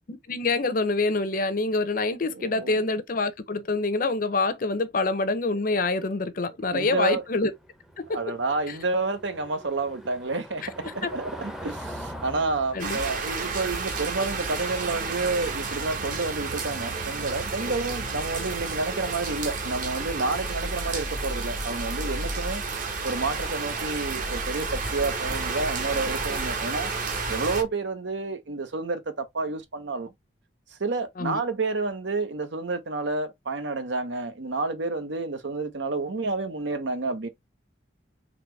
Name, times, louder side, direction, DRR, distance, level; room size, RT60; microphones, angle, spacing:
voice 1, 0.1-7.5 8.1-8.2 12.7-13.0 31.2-31.4, left 3 dB, 50° left, 0.6 m, -26 dB
voice 2, 2.3-2.8 5.5-5.6 6.4-7.2 8.1-22.6 23.0-26.9 27.3-30.1 30.8-37.3, right 3 dB, 75° right, 0.9 m, -30 dB
Car passing by / Engine, 6.6-17.2, equal, ahead, 0.6 m, -44 dB
sound 1, 12.8-27.6, right 4 dB, 45° right, 1.1 m, -31 dB
4.1 x 3.0 x 3.2 m
head